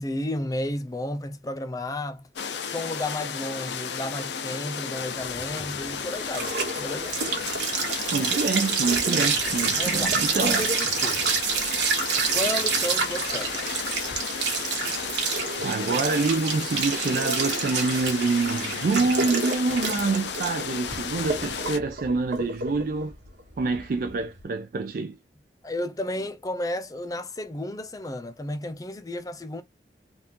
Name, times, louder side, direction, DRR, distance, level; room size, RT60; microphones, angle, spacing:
voice 1, 0.0-2.3 2.6-7.2 9.8-11.4 12.3-13.7 25.6-29.6, left 1 dB, 20° left, 0.5 m, -32 dB
sound 1, 2.4-21.8, left 6 dB, 70° left, 0.5 m, -33 dB
sound 2, 5.4-24.4, right 5 dB, 75° right, 1.1 m, -28 dB
voice 2, 8.1-10.7 15.6-23.1 23.6-25.2, right 4 dB, 50° right, 0.4 m, -26 dB
3.5 x 2.5 x 2.8 m
head